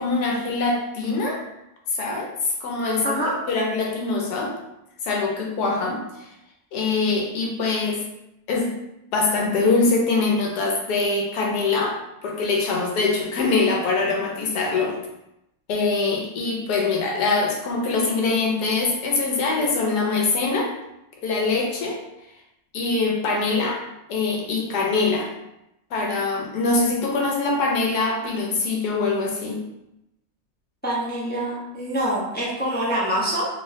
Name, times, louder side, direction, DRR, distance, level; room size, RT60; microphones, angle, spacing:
voice 1, 0.0-1.4 1.9-3.2 3.5-4.5 5.0-6.3 6.7-8.0 8.5-8.7 9.1-12.0 12.2-15.0 15.7-20.7 21.2-22.0 22.7-23.8 24.1-25.3 25.9-29.6, left 3 dB, 80° left, 0 dB, 1.3 m, -23 dB
voice 2, 3.0-3.4 30.8-33.5, right 1 dB, 10° left, -7 dB, 0.6 m, -25 dB
3.5 x 3.1 x 2.7 m, 0.86 s
omnidirectional pair, 1.7 m